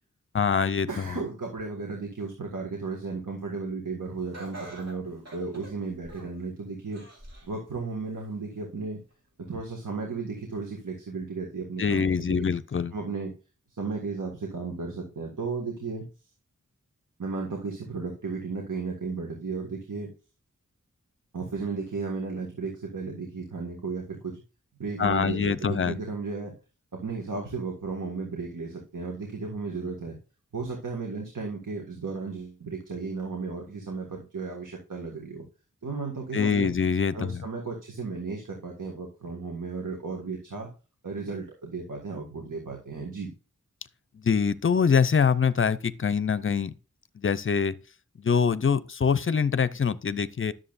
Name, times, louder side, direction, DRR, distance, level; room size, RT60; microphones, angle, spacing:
voice 1, 0.3-1.2 11.8-12.9 25.0-26.0 36.3-37.4 44.2-46.7 47.2-47.8 48.2-50.5, left 6 dB, 40° left, 0.5 m, -24 dB
voice 2, 0.9-9.0 9.4-12.5 12.9-13.3 13.7-16.1 17.2-20.1 21.3-24.4 24.8-26.5 27.0-30.2 30.5-35.4 35.8-36.7 37.1-40.7 41.0-43.3, right 4 dB, 80° right, 1.8 m, -34 dB
Laughter, 4.3-6.4 6.9-7.6 8.0-8.1 9.1-9.2, right 1 dB, 55° right, 4.2 m, -44 dB
11.0 x 7.2 x 2.5 m
wide cardioid pair, 70°, 31 cm